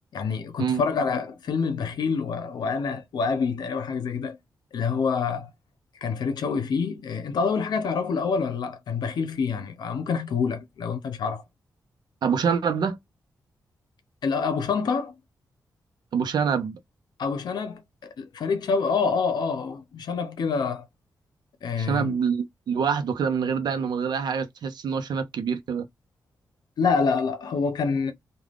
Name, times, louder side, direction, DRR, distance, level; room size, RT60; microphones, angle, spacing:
voice 1, 0.1-4.4 4.7-5.5 6.0-11.4 14.2-15.1 17.2-20.9 21.6-22.1 26.8-28.1, left 5 dB, 75° left, 0.7 m, -27 dB
voice 2, 12.2-13.0 16.1-16.8 21.8-25.9, right 6 dB, 80° right, 0.7 m, -26 dB
3.4 x 2.3 x 2.4 m
wide cardioid pair, 120°, 7 cm